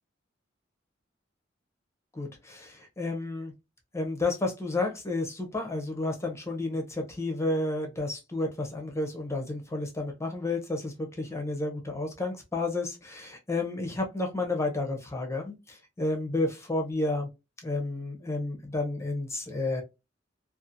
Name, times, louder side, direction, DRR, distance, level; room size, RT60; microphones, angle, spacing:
voice 1, 2.1-3.5 3.9-17.3 17.6-19.8, left 2 dB, 15° left, 0.5 m, -31 dB
2.6 x 2.4 x 2.5 m
head